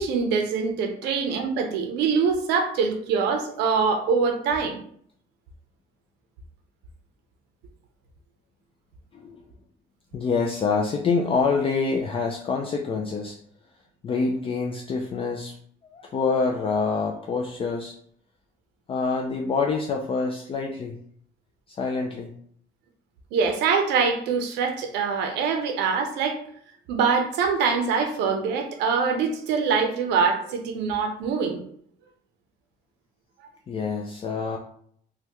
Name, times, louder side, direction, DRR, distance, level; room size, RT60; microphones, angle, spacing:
voice 1, 0.0-4.8 23.3-26.4 26.9-31.6, right 5 dB, 85° right, 5 dB, 0.6 m, -24 dB
voice 2, 10.1-13.4 14.0-15.6 15.8-18.0 18.9-21.0 21.7-22.4 33.7-34.6, left 4 dB, 35° left, 1 dB, 0.3 m, -26 dB
3.3 x 2.2 x 2.9 m, 0.62 s
cardioid pair, 110°, 17 cm